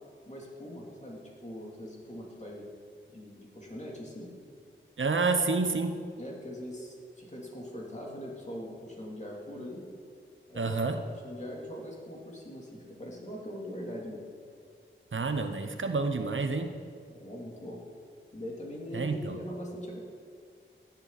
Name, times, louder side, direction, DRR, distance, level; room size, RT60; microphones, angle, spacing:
voice 1, 0.0-2.7 3.1-4.3 6.2-9.9 10.5-14.2 17.1-17.8 18.3-20.0, equal, 35° left, -3 dB, 3.2 m, -42 dB
voice 2, 5.0-6.0 10.5-11.0 15.1-16.7 18.9-19.4, right 3 dB, 70° right, 7 dB, 0.9 m, -29 dB
17.0 x 11.0 x 4.2 m, 2.2 s
wide cardioid pair, 75°, 21 cm